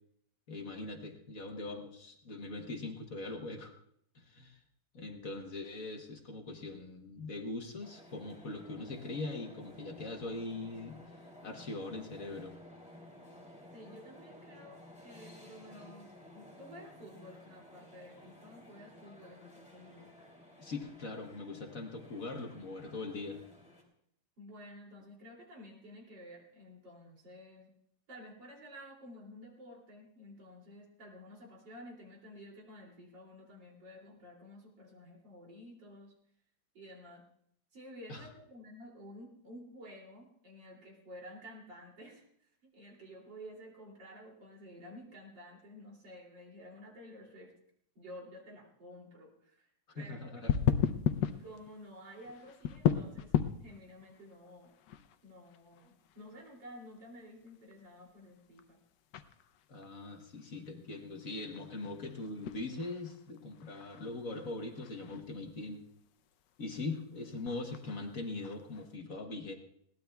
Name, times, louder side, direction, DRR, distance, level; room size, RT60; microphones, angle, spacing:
voice 1, 0.5-3.7 4.1-4.6 4.9-11.0 11.4-12.6 20.6-23.4 38.1-38.3 49.9-50.5 59.7-65.8 66.6-69.6, left 3 dB, 50° left, 3 dB, 1.5 m, -41 dB
sound 1, 7.8-23.8, left 1 dB, 5° right, 2.9 m, -55 dB
voice 2, 13.7-20.2 24.4-27.7 28.1-36.2 36.7-37.2 37.7-47.5 48.0-50.4 51.4-53.3 53.6-54.7 55.2-58.8, equal, 70° right, -1 dB, 3.6 m, -52 dB
sound 2, 50.5-69.0, left 9 dB, 70° left, 1.3 m, -38 dB
21.5 x 17.5 x 2.3 m, 0.69 s
omnidirectional pair, 2.0 m